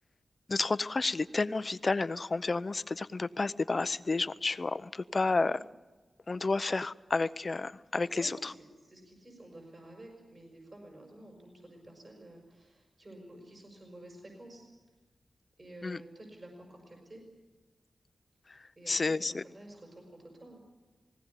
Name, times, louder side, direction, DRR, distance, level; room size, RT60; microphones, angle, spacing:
voice 1, 0.5-5.6 6.3-8.5 15.8-16.0 18.9-19.4, left 3 dB, 45° left, 14 dB, 0.7 m, -31 dB
voice 2, 5.2-5.6 6.4-6.5 8.1-14.7 15.6-17.2 18.8-20.6, right 1 dB, 45° right, 2 dB, 5.9 m, -51 dB
19.5 x 17.5 x 9.9 m, 1.2 s
cardioid pair, 65°, 0 cm